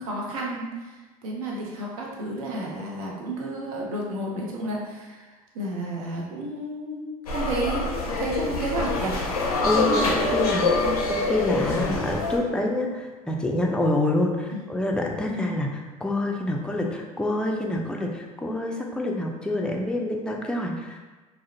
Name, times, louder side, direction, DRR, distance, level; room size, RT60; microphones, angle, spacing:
voice 1, 0.0-9.2 10.7-11.0 15.3-15.5, right 1 dB, 75° right, -2 dB, 0.6 m, -32 dB
sound 1, 7.3-12.4, left 3 dB, 90° left, 0.4 m, -25 dB
voice 2, 9.6-10.8 11.1-21.0, left 1 dB, 5° left, 1 dB, 0.3 m, -27 dB
2.4 x 2.0 x 2.7 m, 1.2 s
hypercardioid pair, 70°, 18 cm